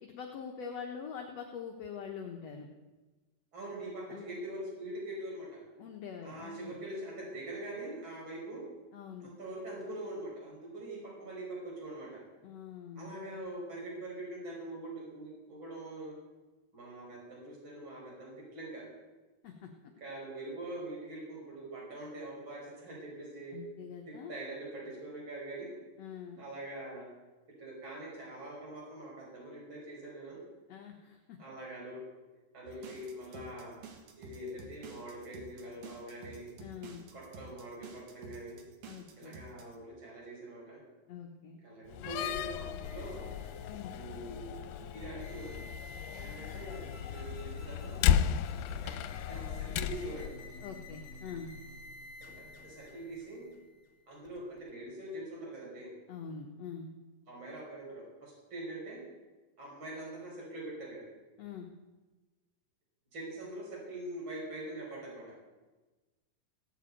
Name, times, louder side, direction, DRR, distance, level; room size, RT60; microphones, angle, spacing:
voice 1, 0.0-2.7 4.1-4.3 5.8-6.8 8.9-9.3 12.4-13.1 19.4-19.7 23.5-24.4 26.0-26.4 30.7-31.4 32.7-32.8 36.6-37.1 38.9-39.4 41.1-41.6 43.7-43.9 50.6-51.5 56.1-56.9 61.4-61.7, left 6 dB, 60° left, 2 dB, 2.0 m, -44 dB
voice 2, 3.5-5.6 6.2-8.6 9.2-12.2 13.0-16.2 16.7-18.8 20.0-23.6 24.1-25.7 26.4-27.1 27.6-30.4 31.4-32.0 32.5-33.7 34.2-36.5 37.1-38.6 39.2-40.8 41.6-43.3 43.9-44.5 44.9-45.6 46.1-48.0 48.8-48.9 49.3-50.3 52.4-53.4 54.1-55.9 57.3-59.0 59.6-61.0 63.1-65.3, right 1 dB, 35° right, -3 dB, 5.9 m, -43 dB
sound 1, 32.7-39.8, right 4 dB, 80° right, 3.5 m, -51 dB
Slam, 41.9-50.3, left 10 dB, 85° left, 2.4 m, -34 dB
sound 2, 42.8-54.7, left 3 dB, 35° left, 2.5 m, -48 dB
16.5 x 8.3 x 9.1 m, 1.2 s
omnidirectional pair, 4.0 m